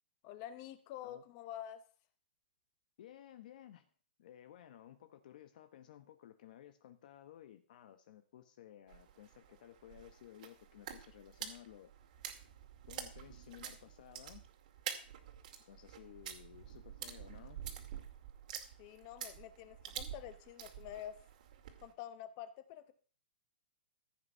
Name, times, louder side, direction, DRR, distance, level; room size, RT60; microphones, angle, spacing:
voice 1, 0.2-1.8 18.8-21.1 21.8-22.9, left 11 dB, 30° left, 12 dB, 1.1 m, -48 dB
voice 2, 3.0-3.9 4.2-11.9 12.9-14.4 15.6-17.6, left 11 dB, 50° left, 9 dB, 1.1 m, -56 dB
sound 1, 8.9-21.9, right 9 dB, 45° right, 2.2 m, -48 dB
15.0 x 8.3 x 5.6 m, 0.40 s
hypercardioid pair, 170°, 6 cm